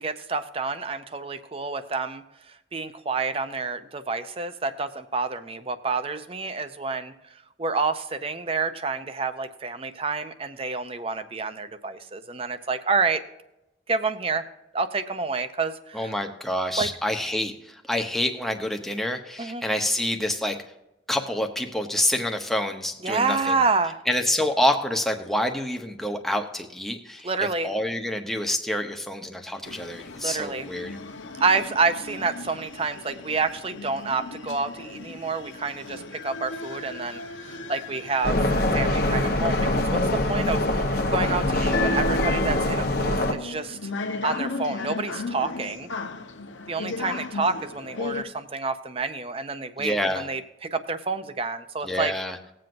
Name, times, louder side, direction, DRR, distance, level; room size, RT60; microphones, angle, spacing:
voice 1, 0.0-2.2 2.7-7.1 7.6-13.2 13.9-14.5 14.7-16.1 16.8-16.9 19.4-19.6 23.0-24.0 27.2-27.7 30.2-30.7 31.4-38.4 38.7-43.9 44.2-45.9 46.7-52.1, right 4 dB, 30° right, 11 dB, 0.6 m, -28 dB
voice 2, 15.9-20.6 21.1-23.6 24.1-27.3 27.6-31.0 49.8-50.3 51.8-52.4, left 1 dB, ahead, 4 dB, 0.8 m, -27 dB
sound 1, 29.6-48.2, left 3 dB, 85° left, 0.9 m, -35 dB
sound 2, 38.2-43.3, left 1 dB, 55° left, 1.0 m, -24 dB
19.0 x 7.6 x 2.6 m, 0.91 s
head